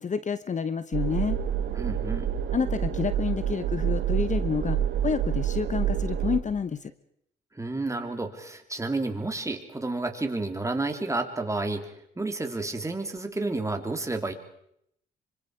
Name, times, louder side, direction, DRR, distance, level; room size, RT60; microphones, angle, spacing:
voice 1, 0.0-1.4 2.5-6.9, left 6 dB, 40° left, 13 dB, 1.1 m, -29 dB
sound 1, 0.9-6.4, right 9 dB, 75° right, 4.7 m, -28 dB
voice 2, 1.7-2.3 7.5-14.3, right 2 dB, 15° right, 5 dB, 3.5 m, -31 dB
26.5 x 25.0 x 5.1 m, 0.73 s
cardioid pair, 90°, 20 cm